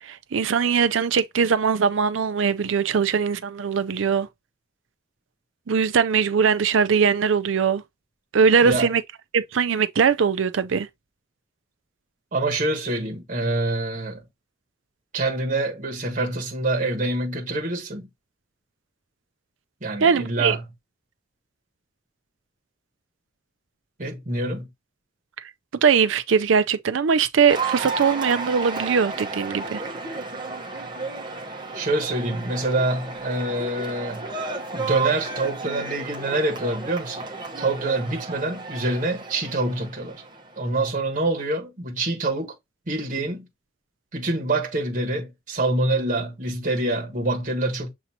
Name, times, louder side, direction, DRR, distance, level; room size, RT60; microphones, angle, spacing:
voice 1, 0.0-4.3 5.7-7.8 8.3-9.0 9.3-10.9 20.0-20.6 25.4-25.5 25.8-29.8, right 6 dB, 85° right, 0.5 m, -21 dB
voice 2, 12.3-14.2 15.1-18.1 19.8-20.6 24.0-24.7 31.7-34.3 34.7-37.3 37.6-40.2 40.6-42.5 42.9-43.5 44.1-47.9, right 2 dB, 45° right, 1.3 m, -26 dB
Cheering / Applause, 27.5-40.9, right 3 dB, 25° right, 1.0 m, -33 dB
7.0 x 2.7 x 2.8 m
head